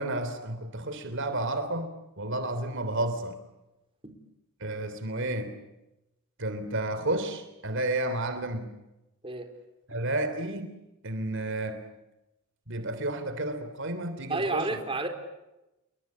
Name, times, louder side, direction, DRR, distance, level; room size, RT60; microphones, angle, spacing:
voice 1, 0.0-1.9 2.2-3.4 4.6-5.5 6.4-8.7 9.9-10.7 11.0-11.8 12.7-14.7, right 1 dB, 55° right, 10 dB, 3.2 m, -31 dB
voice 2, 14.3-15.1, right 2 dB, 25° right, 6 dB, 4.1 m, -30 dB
29.5 x 23.0 x 8.6 m, 0.96 s
head